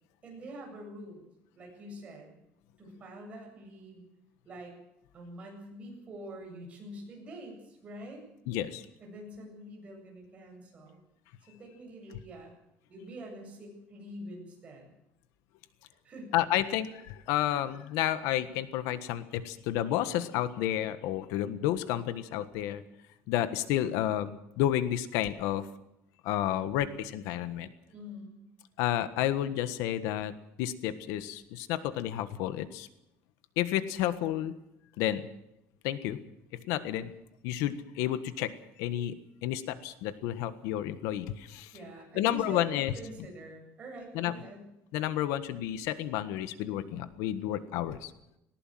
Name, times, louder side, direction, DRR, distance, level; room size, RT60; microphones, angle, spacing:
voice 1, 0.2-1.3 1.5-2.3 2.8-4.0 4.4-4.8 5.1-8.2 9.0-11.0 11.5-12.5 12.9-14.9 16.0-16.3 27.9-28.3 41.7-44.7, right 1 dB, 25° right, 0 dB, 8.0 m, -45 dB
voice 2, 8.5-8.8 16.3-22.8 23.3-25.7 26.2-27.7 28.8-30.3 30.6-32.9 33.6-34.5 35.0-35.3 35.8-36.2 36.7-37.1 37.4-38.5 38.8-39.1 39.4-41.7 42.1-42.9 44.1-44.3 44.9-48.1, left 12 dB, 80° left, 12 dB, 1.5 m, -31 dB
19.5 x 18.5 x 7.7 m, 0.85 s
cardioid pair, 175°, 5 cm